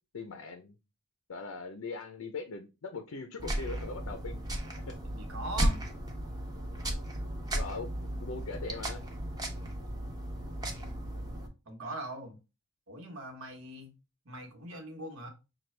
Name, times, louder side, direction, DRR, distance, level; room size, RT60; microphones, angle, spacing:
voice 1, 0.1-0.7 1.3-4.4 4.9-5.0 7.5-9.0, left 3 dB, 90° left, 0.6 m, -40 dB
sound 1, 3.4-11.5, right 1 dB, 20° right, 0.8 m, -35 dB
voice 2, 5.0-5.8 11.6-12.4 12.9-13.9 14.2-15.3, right 1 dB, 80° right, 1.3 m, -41 dB
5.9 x 2.3 x 3.2 m
head